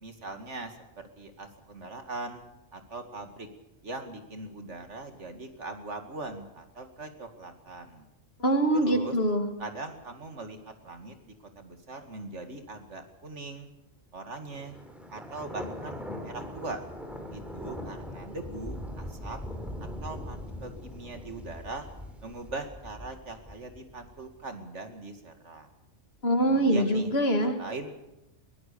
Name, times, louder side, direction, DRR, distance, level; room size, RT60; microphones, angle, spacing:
voice 1, 0.0-2.4 2.7-3.5 3.8-8.1 8.7-9.2 9.6-13.7 14.1-14.8 15.1-16.8 17.3-19.4 20.0-21.9 22.2-25.7 26.4-27.1 27.6-27.9, right 3 dB, 80° right, 6 dB, 2.6 m, -40 dB
voice 2, 8.4-9.5 26.2-27.6, right 1 dB, 60° left, 6 dB, 2.5 m, -24 dB
Thunder, 14.5-24.3, left 1 dB, ahead, 3.8 m, -41 dB
22.5 x 18.5 x 7.0 m, 0.92 s
omnidirectional pair, 1.2 m